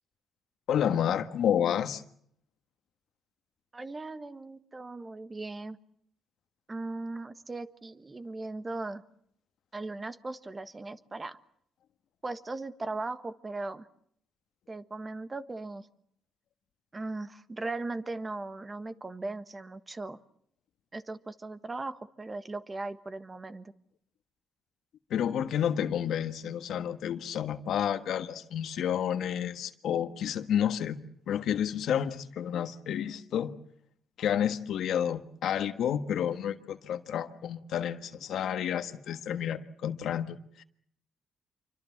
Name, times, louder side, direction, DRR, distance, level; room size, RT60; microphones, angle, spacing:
voice 1, 0.7-2.0 25.1-31.0 31.3-33.5 34.2-40.6, left 9 dB, 75° left, 10 dB, 1.4 m, -30 dB
voice 2, 3.7-5.8 6.7-9.0 9.7-11.4 12.2-13.9 14.7-15.9 16.9-20.2 20.9-23.7, right 2 dB, 25° right, 12 dB, 1.5 m, -38 dB
27.0 x 24.5 x 7.4 m, 0.69 s
cardioid pair, 90°, 0 cm